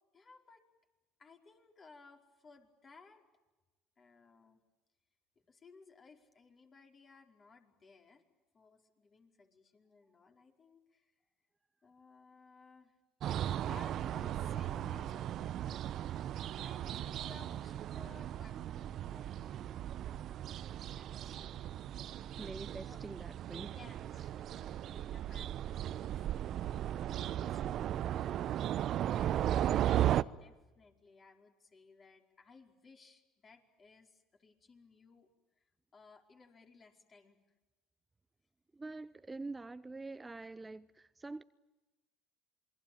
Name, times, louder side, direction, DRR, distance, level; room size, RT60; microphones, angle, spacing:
voice 1, 0.1-0.6 1.2-3.2 4.0-4.6 5.5-8.2 8.5-11.1 11.8-13.0 13.5-21.6 22.9-23.0 23.7-35.3 35.6-35.7 35.9-37.4, left 4 dB, 35° left, 3 dB, 5.0 m, -60 dB
sound 1, 13.2-30.2, right 11 dB, 55° right, 0.9 m, -36 dB
voice 2, 22.4-23.8 38.7-41.4, right 3 dB, 15° right, 13 dB, 0.8 m, -45 dB
28.0 x 22.0 x 9.0 m, 1.1 s
hypercardioid pair, 75°, 0 cm